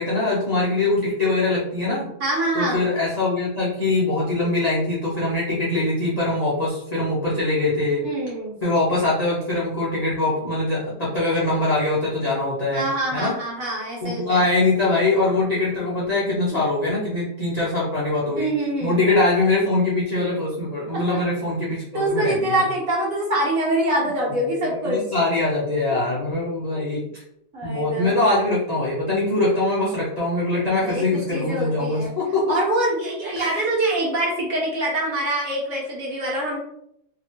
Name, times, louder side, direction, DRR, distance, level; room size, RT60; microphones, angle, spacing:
voice 1, 0.0-2.1 2.5-8.1 8.6-12.9 13.1-13.4 14.0-18.5 18.8-22.6 24.5-27.1 27.6-32.6 33.4-33.6, left 2 dB, 75° left, -8 dB, 0.3 m, -22 dB
voice 2, 2.2-2.9 8.0-8.5 12.7-14.5 16.5-16.6 18.4-19.0 20.9-21.2 21.9-25.0 25.9-26.1 26.7-26.8 27.5-28.1 30.8-31.0 31.3-32.1 32.5-36.6, right 1 dB, 55° right, -4 dB, 1.5 m, -25 dB
2.8 x 2.8 x 2.8 m, 0.79 s
omnidirectional pair, 1.8 m